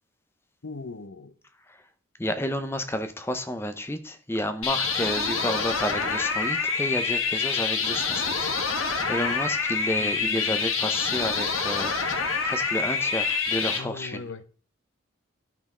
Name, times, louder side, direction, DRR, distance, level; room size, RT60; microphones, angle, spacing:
voice 1, 0.6-1.3 10.0-10.6 13.6-14.4, left 3 dB, 65° left, 0.8 m, -39 dB
voice 2, 2.2-14.2, left 1 dB, 10° left, 0.7 m, -31 dB
sound 1, 4.6-13.8, left 5 dB, 85° left, 1.6 m, -26 dB
11.0 x 5.9 x 3.7 m
head